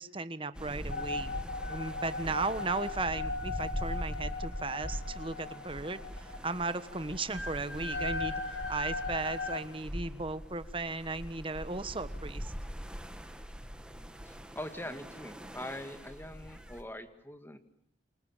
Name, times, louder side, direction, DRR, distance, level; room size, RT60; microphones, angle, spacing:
voice 1, 0.0-1.4 1.7-12.5, right 3 dB, 30° right, 12 dB, 1.4 m, -36 dB
sound 1, 0.5-16.8, equal, 5° right, 2.1 m, -42 dB
sound 2, 0.9-9.6, left 3 dB, 80° left, 2.1 m, -38 dB
voice 2, 14.2-17.6, left 1 dB, 10° left, 9 dB, 2.1 m, -43 dB
28.5 x 26.5 x 7.4 m, 0.74 s
head